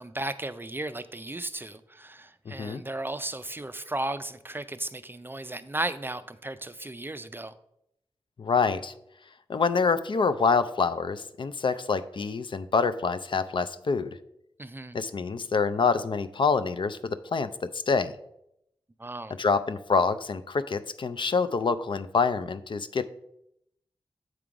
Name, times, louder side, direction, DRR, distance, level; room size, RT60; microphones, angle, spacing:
voice 1, 0.0-7.5 14.6-15.0 19.0-19.4, right 2 dB, 20° right, 12 dB, 0.4 m, -35 dB
voice 2, 2.5-2.8 8.4-8.9 9.5-14.2 14.9-18.1 19.4-23.0, left 5 dB, 55° left, 12 dB, 0.4 m, -26 dB
7.8 x 3.7 x 4.7 m, 0.78 s
cardioid pair, 55°, 10 cm